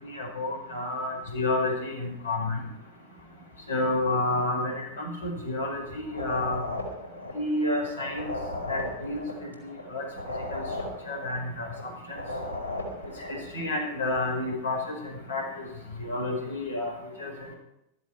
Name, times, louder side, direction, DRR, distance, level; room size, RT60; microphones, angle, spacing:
voice 1, 0.0-2.6 3.7-6.6 7.3-8.3 8.7-9.2 9.9-10.0 10.5-10.6 11.1-11.7 12.1-12.2 13.3-14.9 15.3-15.7 16.0-16.9 17.2-17.3, left 2 dB, 70° left, 2 dB, 5.2 m, -29 dB
sound 1, 6.1-13.4, left 2 dB, 85° right, 3.9 m, -36 dB
15.5 x 14.0 x 4.5 m, 0.86 s
figure-of-eight pair, 90°, 0 cm